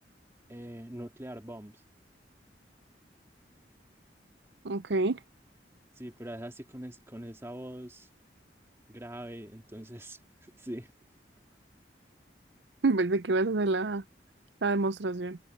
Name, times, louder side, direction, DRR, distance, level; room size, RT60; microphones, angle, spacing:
voice 1, 0.5-1.7 6.0-8.1 8.9-10.2 10.6-10.9, right 1 dB, 15° right, 2.2 m, -42 dB
voice 2, 4.6-5.2 12.8-14.0 14.6-15.4, right 3 dB, 70° right, 0.7 m, -27 dB
head